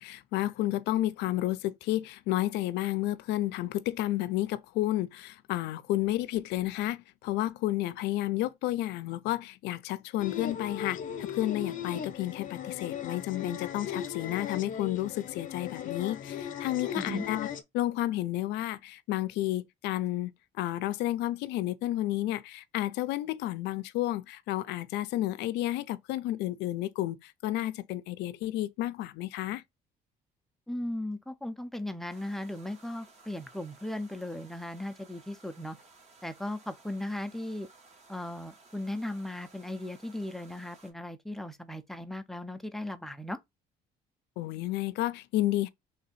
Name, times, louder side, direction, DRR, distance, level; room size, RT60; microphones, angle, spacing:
voice 1, 0.0-17.5 17.7-20.3 20.6-29.6 44.4-45.7, left 15 dB, 85° left, 0.4 m, -31 dB
sound 1, 10.2-17.6, left 8 dB, 55° left, 0.7 m, -37 dB
voice 2, 30.7-35.8 36.2-37.7 38.1-43.4, left 1 dB, ahead, 0.5 m, -37 dB
sound 2, 32.1-40.9, right 3 dB, 40° right, 1.2 m, -58 dB
3.4 x 2.7 x 4.1 m
cardioid pair, 110°, 17 cm